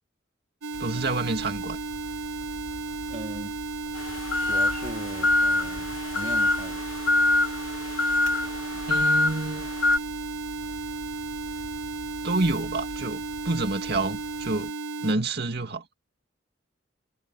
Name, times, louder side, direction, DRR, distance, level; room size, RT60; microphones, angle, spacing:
sound 1, 0.6-15.1, right 2 dB, 85° right, 0.9 m, -34 dB
sound 2, 0.7-14.7, left 1 dB, 20° left, 4.9 m, -46 dB
voice 1, 0.8-1.8 8.9-9.7 12.2-14.7 15.0-16.0, right 2 dB, 55° right, 2.3 m, -28 dB
voice 2, 3.1-3.6 4.5-6.9, right 1 dB, 35° right, 4.0 m, -39 dB
sound 3, 4.0-10.0, left 2 dB, 90° left, 1.3 m, -25 dB
head